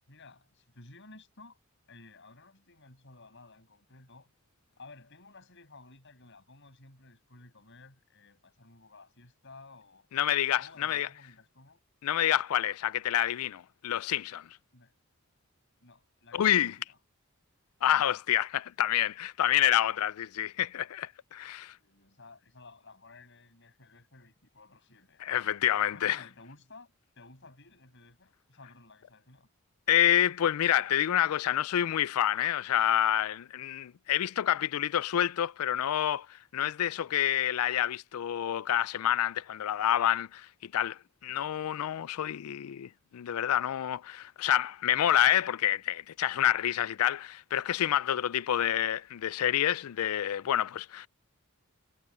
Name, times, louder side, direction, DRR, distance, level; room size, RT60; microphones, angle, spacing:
voice 1, 0.1-1.6 1.9-4.3 4.8-10.1 10.6-11.8 14.7-14.9 15.8-17.0 21.6-25.2 25.9-29.5, left 3 dB, 55° left, 7.6 m, -54 dB
voice 2, 10.1-11.1 12.0-14.5 16.3-16.8 17.8-21.8 25.2-26.2 29.9-51.1, left 11 dB, 80° left, 0.4 m, -28 dB
head